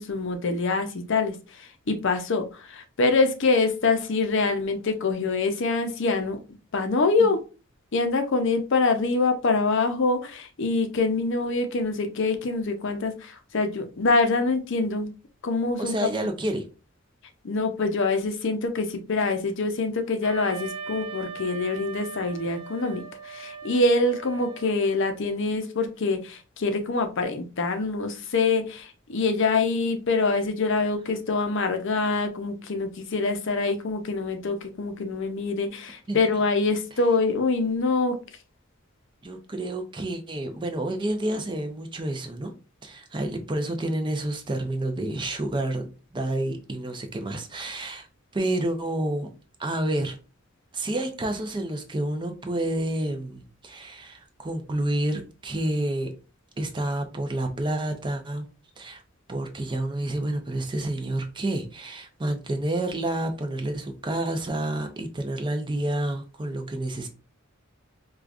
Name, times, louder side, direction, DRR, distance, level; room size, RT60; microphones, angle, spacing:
voice 1, 0.0-6.4 6.7-7.4 7.9-15.1 15.4-16.0 17.4-38.2, left 3 dB, 60° left, 0.6 m, -25 dB
voice 2, 15.8-16.6 36.1-36.2 39.2-42.5 42.8-48.1 48.3-49.3 49.6-50.2 50.7-56.1 56.6-58.5 58.8-59.0 59.3-67.1, right 1 dB, 25° right, 0.5 m, -29 dB
Wind instrument woodwind instrument, 20.2-25.1, right 5 dB, 90° right, 0.9 m, -39 dB
4.9 x 2.3 x 2.4 m
head